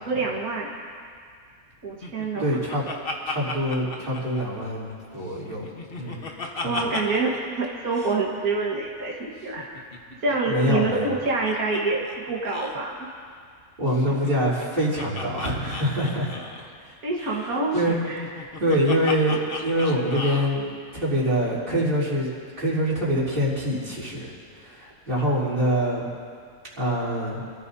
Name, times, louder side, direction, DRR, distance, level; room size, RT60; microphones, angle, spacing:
voice 1, 0.0-0.7 1.8-2.5 6.3-9.7 10.2-13.1 17.0-17.8 18.1-18.2, right 3 dB, 90° right, -3 dB, 2.1 m, -26 dB
Laughter, 2.0-4.9 5.3-7.4 7.6-7.7 7.9-8.2 9.4-11.8 12.1-12.2 12.4-12.8 13.9-16.7 17.7-20.5, left 3 dB, 45° left, 1.3 m, -35 dB
voice 2, 2.4-2.8 3.3-5.7 6.0-6.2 6.6-6.9 10.5-11.1 13.8-16.4 16.8-16.9 17.2-17.3 17.7-18.0 18.6-22.3 22.6-26.1 26.8-27.4, equal, 35° right, -7 dB, 3.5 m, -25 dB
25.5 x 14.5 x 2.8 m, 2.1 s
omnidirectional pair, 1.5 m